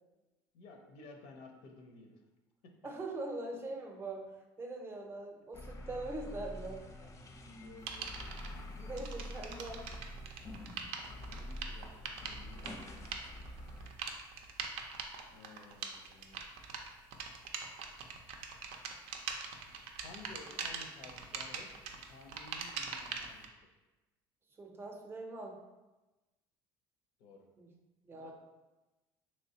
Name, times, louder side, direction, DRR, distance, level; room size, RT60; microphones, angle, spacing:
voice 1, 0.5-2.2 2.6-2.7 7.6-8.1 8.8-8.9 11.1-12.8 15.3-16.4 20.0-21.8 22.0-23.8 27.2-27.4 28.1-28.3, left 3 dB, 75° left, 3 dB, 0.6 m, -54 dB
voice 2, 2.8-4.3 4.6-6.8 8.8-9.8 24.6-25.6 27.6-27.7 28.0-28.3, right 2 dB, 25° right, 2 dB, 0.5 m, -42 dB
sound 1, 5.5-13.9, left 1 dB, 30° left, 0.4 m, -46 dB
sound 2, 7.9-8.5 8.9-23.5, right 5 dB, 75° right, 0.4 m, -43 dB
3.1 x 3.0 x 2.7 m, 1.1 s
cardioid pair, 115°, 10 cm